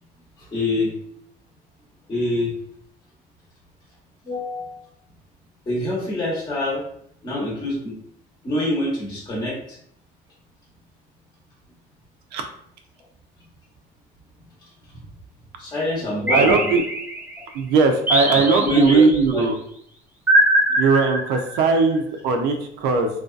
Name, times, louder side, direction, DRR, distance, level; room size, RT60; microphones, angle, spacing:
voice 1, 0.4-0.9 2.1-2.5 4.2-4.7 5.7-6.8 7.2-7.9 8.4-9.8 15.6-16.7 18.3-19.0 19.3-19.5, left 1 dB, 25° left, -6 dB, 0.9 m, -25 dB
sound 1, 16.3-17.4 18.1-19.2 20.3-21.7, right 1 dB, 10° right, 0.4 m, -21 dB
voice 2, 16.3-16.8 17.5-19.6 20.8-23.1, right 4 dB, 80° right, 4 dB, 0.4 m, -19 dB
2.5 x 2.3 x 2.3 m, 0.68 s
cardioid pair, 130°, 17 cm